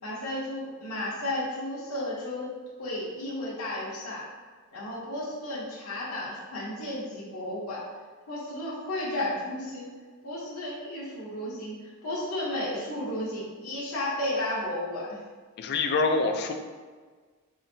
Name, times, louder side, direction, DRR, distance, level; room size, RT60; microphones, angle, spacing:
voice 1, 0.0-4.3 4.7-7.8 8.3-9.9 10.2-15.2, left 1 dB, 80° left, -7 dB, 1.0 m, -33 dB
voice 2, 15.6-16.5, left 3 dB, 50° left, 5 dB, 0.4 m, -25 dB
4.8 x 2.6 x 2.7 m, 1.5 s
head